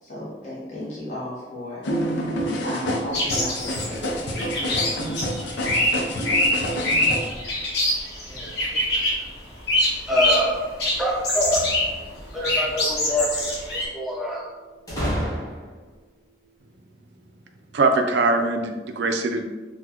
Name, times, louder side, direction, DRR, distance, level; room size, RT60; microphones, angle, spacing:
voice 1, 0.0-4.8, left 1 dB, 40° left, -7 dB, 1.0 m, -36 dB
sound 1, 1.8-7.3, equal, 80° left, 0.5 m, -28 dB
sound 2, 3.1-9.3 9.7-10.5 10.8-11.9 12.2-13.9, left 1 dB, 65° left, 1.0 m, -24 dB
voice 2, 8.3-9.2 10.1-10.6 11.0-11.7 12.3-13.6 13.9-14.5, equal, ahead, -4 dB, 0.6 m, -25 dB
sound 3, 11.4-12.4 14.9-15.9, equal, 20° left, 1.1 m, -30 dB
voice 3, 17.7-19.4, right 3 dB, 75° right, 4 dB, 0.4 m, -22 dB
4.1 x 2.2 x 2.9 m, 1.3 s
head